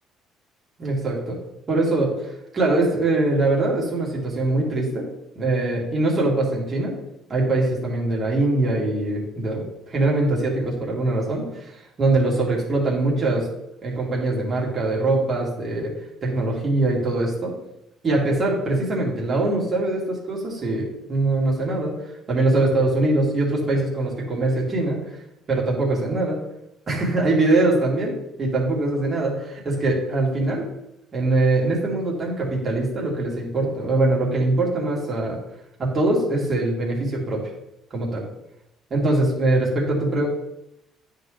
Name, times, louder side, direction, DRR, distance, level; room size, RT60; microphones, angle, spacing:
voice 1, 0.8-1.4 1.7-5.0 5.3-6.9 7.3-13.5 13.8-15.9 16.2-17.5 18.0-22.0 22.3-25.0 25.5-26.4 26.9-30.7 31.1-35.4 35.8-37.4 37.9-38.2 38.9-40.3, right 2 dB, 35° right, -3 dB, 2.5 m, -22 dB
10.0 x 3.9 x 3.3 m, 0.86 s
cardioid pair, 105°, 0 cm